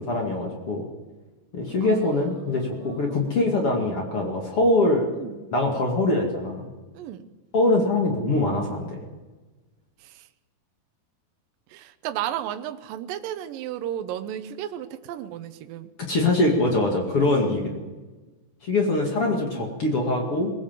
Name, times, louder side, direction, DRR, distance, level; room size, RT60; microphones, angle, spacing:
voice 1, 0.1-0.9 1.5-5.1 5.5-6.7 7.5-9.0 16.0-17.8 18.6-20.5, left 2 dB, 40° left, 0 dB, 2.8 m, -23 dB
voice 2, 1.8-3.4 5.1-5.5 6.9-7.3 10.0-10.2 11.7-15.9 18.7-19.7, right 11 dB, 75° right, 8 dB, 2.4 m, -35 dB
22.0 x 18.0 x 7.5 m, 1.3 s
omnidirectional pair, 4.4 m